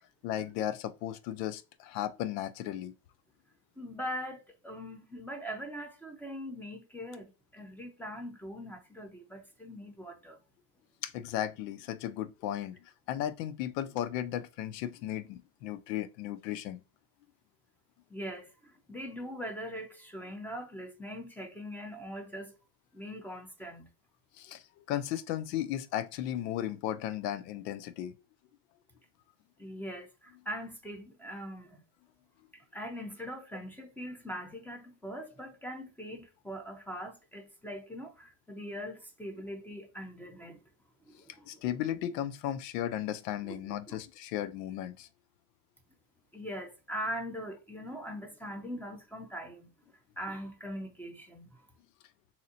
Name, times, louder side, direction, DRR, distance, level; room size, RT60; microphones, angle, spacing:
voice 1, 0.2-2.9 11.0-16.8 24.4-28.1 41.5-45.1, left 11 dB, 75° left, 0.7 m, -35 dB
voice 2, 3.8-10.4 18.1-22.5 22.9-23.9 29.6-31.8 32.5-40.6 41.1-41.6 43.4-44.0 46.3-49.7 50.2-51.6, equal, 5° left, 0.8 m, -41 dB
3.9 x 2.8 x 2.7 m
supercardioid pair, 105°, 50 cm